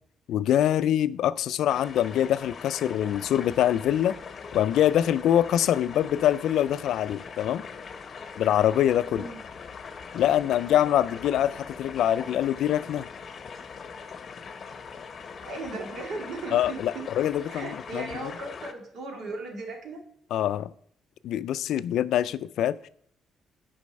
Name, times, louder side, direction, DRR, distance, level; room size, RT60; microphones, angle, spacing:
voice 1, 0.3-4.2 4.5-7.6 8.4-9.2 10.1-13.0 16.5-18.3 20.3-20.7 21.2-22.8, left 11 dB, 80° left, 0.3 m, -24 dB
sound 1, 1.7-18.7, left 5 dB, 50° left, 0.7 m, -41 dB
voice 2, 15.4-17.0 17.4-20.0, right 3 dB, 70° right, 2.0 m, -37 dB
8.3 x 5.4 x 5.3 m
cardioid pair, 90°, 0 cm